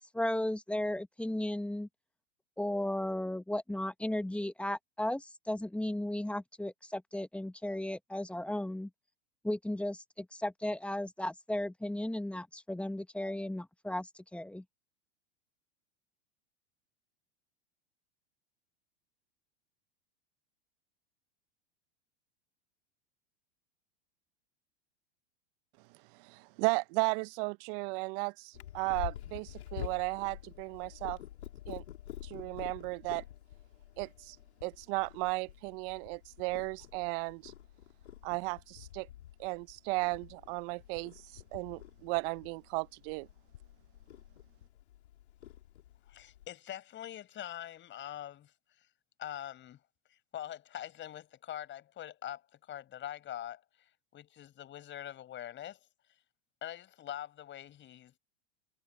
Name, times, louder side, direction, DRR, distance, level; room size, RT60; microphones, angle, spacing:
voice 1, 0.1-1.9 2.6-8.9 9.4-14.6, left 1 dB, 5° left, 1.2 m, -35 dB
voice 2, 26.2-31.2 31.7-31.8 32.2-33.2 34.0-34.4 34.6-37.5 38.2-39.1 39.4-43.3, right 29 dB, 55° right, 1.0 m, -35 dB
Purr, 28.5-46.5, left 12 dB, 75° left, 4.7 m, -48 dB
voice 3, 46.1-48.9 49.2-49.8 50.1-56.2 56.6-58.1, left 11 dB, 35° left, 5.8 m, -44 dB
hypercardioid pair, 100°, 33 cm